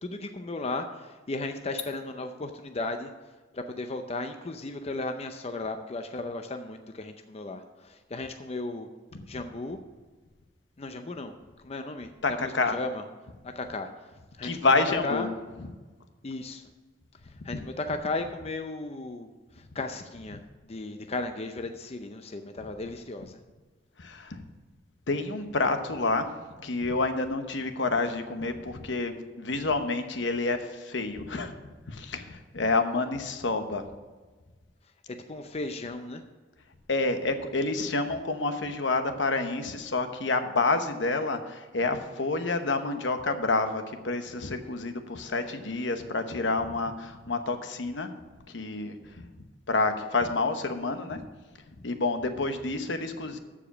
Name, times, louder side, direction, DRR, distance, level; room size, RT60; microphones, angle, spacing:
voice 1, 0.0-3.1 3.5-8.9 9.3-9.8 10.8-11.3 11.6-13.0 13.6-13.9 14.4-14.6 14.9-15.3 16.2-16.6 17.4-20.4 20.7-23.4 35.3-36.2, left 2 dB, 35° left, 6 dB, 0.6 m, -35 dB
voice 2, 12.2-12.8 14.4-15.3 15.6-15.7 17.5-17.6 20.3-20.4 24.0-24.4 25.1-26.3 26.6-31.6 31.9-33.8 36.9-48.1 48.5-49.0 49.7-51.2 51.8-53.4, left 3 dB, 75° left, 8 dB, 1.0 m, -28 dB
14.0 x 5.0 x 6.0 m, 1.3 s
head